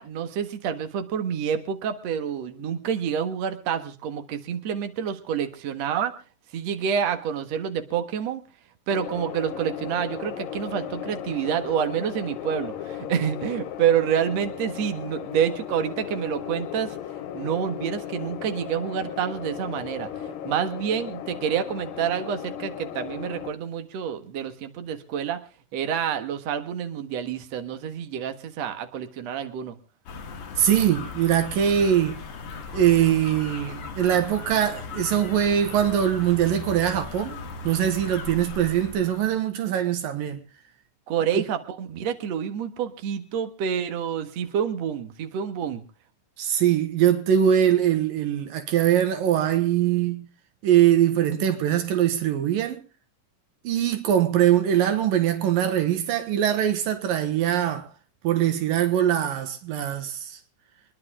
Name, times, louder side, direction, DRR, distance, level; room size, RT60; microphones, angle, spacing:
voice 1, 0.0-6.1 6.5-8.4 8.9-17.0 17.3-25.4 25.7-29.8 41.1-45.8, right 8 dB, 55° right, 2.4 m, -28 dB
sound 1, 8.9-23.5, left 10 dB, 80° left, 2.6 m, -36 dB
sound 2, 30.1-39.4, left 4 dB, 50° left, 2.1 m, -38 dB
voice 2, 30.6-32.2 32.7-37.4 37.6-40.4 41.3-41.4 46.4-50.3 50.6-52.8 53.6-57.9 58.2-60.4, right 10 dB, 80° right, 3.0 m, -22 dB
26.0 x 11.0 x 3.7 m
omnidirectional pair, 4.0 m